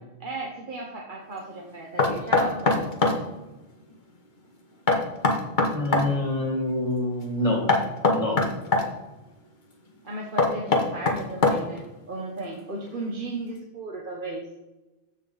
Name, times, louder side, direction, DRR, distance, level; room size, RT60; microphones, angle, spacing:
voice 1, 0.2-2.8 10.0-14.5, right 2 dB, 55° right, -1 dB, 1.3 m, -35 dB
Knock, 2.0-3.2 4.9-6.1 7.7-8.9 10.4-11.8, left 3 dB, 50° left, 1.3 m, -21 dB
voice 2, 5.7-7.7 8.1-8.4, left 1 dB, 30° left, 0 dB, 2.4 m, -26 dB
14.5 x 5.6 x 4.0 m, 1.1 s
omnidirectional pair, 1.1 m